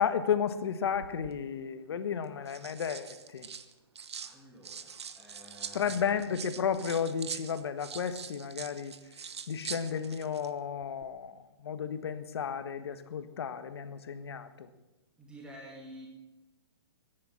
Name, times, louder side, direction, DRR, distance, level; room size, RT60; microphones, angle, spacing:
voice 1, 0.0-3.5 5.7-9.0 9.5-14.7, left 7 dB, 70° left, 10 dB, 1.5 m, -33 dB
sound 1, 0.8-1.4 2.2-4.3 4.6-10.5 10.8-11.0, right 7 dB, 85° right, 1.1 m, -44 dB
voice 2, 4.1-6.2 15.2-16.1, equal, 5° right, -3 dB, 2.5 m, -50 dB
14.0 x 10.5 x 7.8 m, 1.1 s
hypercardioid pair, 145°, 14 cm